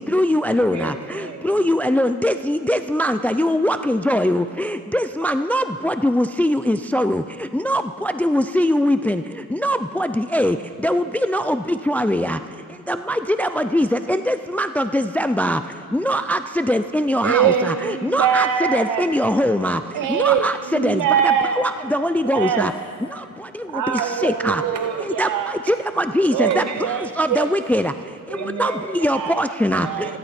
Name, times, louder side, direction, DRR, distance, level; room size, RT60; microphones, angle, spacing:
voice 1, 0.1-0.9 1.4-7.2 7.5-9.2 9.6-10.6 10.8-11.6 11.9-12.4 12.9-15.6 15.9-19.8 20.1-21.0 21.6-22.7 24.2-24.6 25.2-25.3 25.7-26.6 27.2-27.9 28.6-28.7 29.0-29.9, equal, 5° left, 10 dB, 0.4 m, -21 dB
voice 2, 0.7-1.7 24.6-25.2 26.4-26.9 28.3-29.0 29.8-30.2, right 4 dB, 50° right, 3 dB, 2.3 m, -34 dB
voice 3, 17.2-19.0 19.9-21.7 22.3-22.7 23.7-25.5 26.3-27.5 29.1-29.4 29.8-30.1, right 8 dB, 65° right, 7 dB, 0.8 m, -22 dB
27.5 x 12.0 x 4.3 m, 2.3 s
cardioid pair, 95°, 34 cm